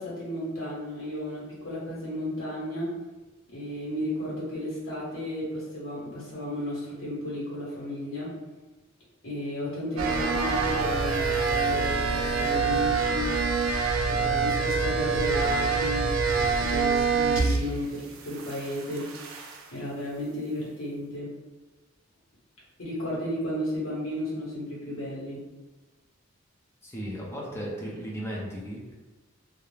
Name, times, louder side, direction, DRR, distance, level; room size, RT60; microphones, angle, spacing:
voice 1, 0.0-2.9 3.5-8.3 9.2-13.8 14.0-19.1 19.7-21.3 22.8-25.4, left 1 dB, 75° left, -6 dB, 1.1 m, -33 dB
sound 1, 10.0-17.9 18.1-19.7, right 4 dB, 85° right, 0.4 m, -26 dB
voice 2, 26.8-28.9, equal, 10° left, -3 dB, 0.5 m, -35 dB
2.4 x 2.0 x 3.1 m, 1.2 s
head